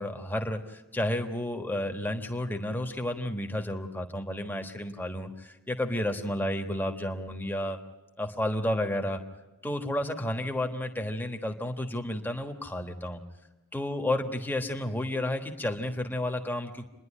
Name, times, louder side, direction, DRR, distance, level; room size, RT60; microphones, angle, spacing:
voice 1, 0.0-7.8 8.2-9.2 9.6-13.2 13.7-16.8, left 1 dB, 10° left, 4 dB, 1.3 m, -31 dB
27.5 x 11.0 x 10.0 m, 1.1 s
head